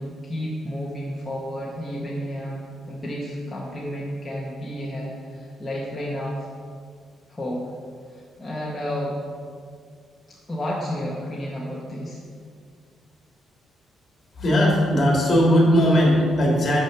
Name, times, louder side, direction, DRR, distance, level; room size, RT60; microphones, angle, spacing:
voice 1, 0.0-6.5 7.3-7.7 8.1-9.2 10.3-12.2, equal, 10° left, -6 dB, 0.9 m, -31 dB
voice 2, 14.4-16.8, equal, 35° left, -2 dB, 1.8 m, -18 dB
6.2 x 5.8 x 6.6 m, 2.1 s
cardioid pair, 170°, 0 cm